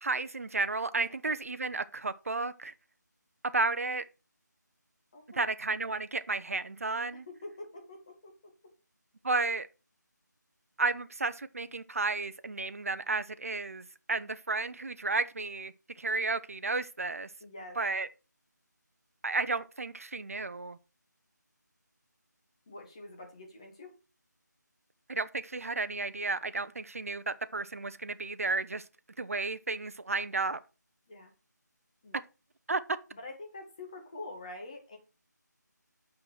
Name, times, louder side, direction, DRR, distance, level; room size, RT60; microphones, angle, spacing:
voice 1, 0.0-2.7 3.5-4.0 5.3-7.2 9.2-9.7 10.8-17.3 17.8-18.1 19.2-20.8 25.1-28.8 29.2-30.6 32.7-32.8, right 3 dB, 50° right, 0.6 m, -32 dB
voice 2, 5.1-5.5 7.1-8.5 17.4-17.8 22.7-23.9 31.1-31.3 32.0-32.2 33.1-35.0, left 2 dB, 20° left, 1.5 m, -46 dB
5.8 x 5.8 x 6.3 m
figure-of-eight pair, 175°, 10 cm